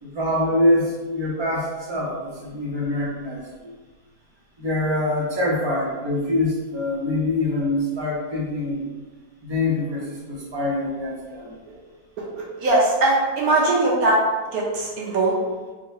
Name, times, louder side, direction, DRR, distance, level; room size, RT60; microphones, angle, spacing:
voice 1, 0.0-3.7 4.6-8.9 9.4-11.6, left 1 dB, 30° right, -6 dB, 0.5 m, -24 dB
voice 2, 12.6-14.2 14.5-15.3, right 2 dB, 70° right, -4 dB, 1.0 m, -20 dB
3.8 x 2.2 x 2.6 m, 1.3 s
omnidirectional pair, 1.8 m